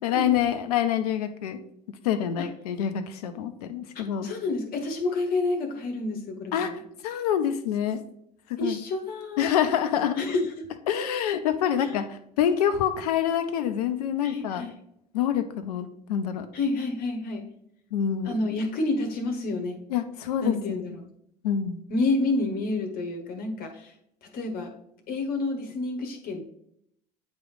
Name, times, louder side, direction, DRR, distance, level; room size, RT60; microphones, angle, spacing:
voice 1, 0.0-1.6 2.0-4.3 6.5-8.0 8.5-8.8 9.4-10.2 10.9-14.7 15.1-16.5 17.9-18.3 19.9-20.8 21.4-21.8, left 9 dB, 65° left, 10 dB, 0.7 m, -26 dB
voice 2, 3.9-6.8 8.6-9.5 10.1-10.7 11.8-11.9 14.2-14.7 16.5-17.4 18.2-19.8 20.4-21.1 21.9-23.9 24.2-24.7 25.1-26.5, left 2 dB, 45° left, 4 dB, 1.1 m, -29 dB
9.2 x 3.1 x 4.9 m, 0.74 s
figure-of-eight pair, 65°, 21 cm